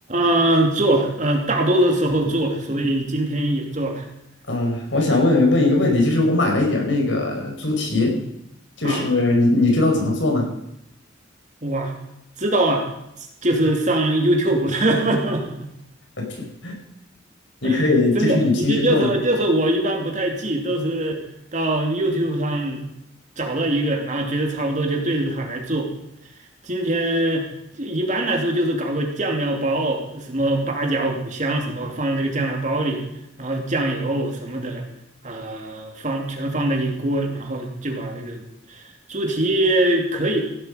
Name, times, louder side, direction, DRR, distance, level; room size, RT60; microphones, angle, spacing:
voice 1, 0.1-4.1 8.8-9.1 11.6-11.9 12.4-12.9 13.4-15.7 17.6-17.9 18.1-21.2 21.5-22.8 23.4-25.9 26.6-33.0 33.4-34.8 35.2-38.4 38.7-40.4, right 1 dB, 40° right, 2 dB, 2.8 m, -22 dB
voice 2, 4.5-8.1 8.8-10.5 16.2-16.3 16.6-16.7 17.6-19.1, left 2 dB, 75° left, 1 dB, 5.0 m, -19 dB
16.5 x 12.0 x 5.1 m, 0.81 s
head